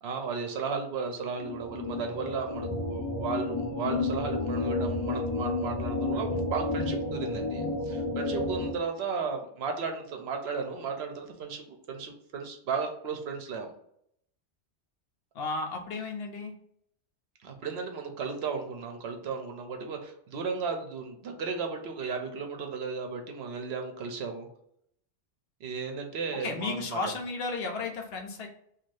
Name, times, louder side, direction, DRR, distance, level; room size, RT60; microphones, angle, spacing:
voice 1, 0.0-13.7 17.4-24.5 25.6-27.1, right 5 dB, 65° right, 4 dB, 0.8 m, -35 dB
sound 1, 1.4-8.7, left 2 dB, 30° left, 0.7 m, -31 dB
voice 2, 15.3-16.5 26.4-28.5, left 3 dB, 65° left, 2 dB, 0.8 m, -33 dB
2.6 x 2.4 x 3.2 m, 0.69 s
omnidirectional pair, 1.2 m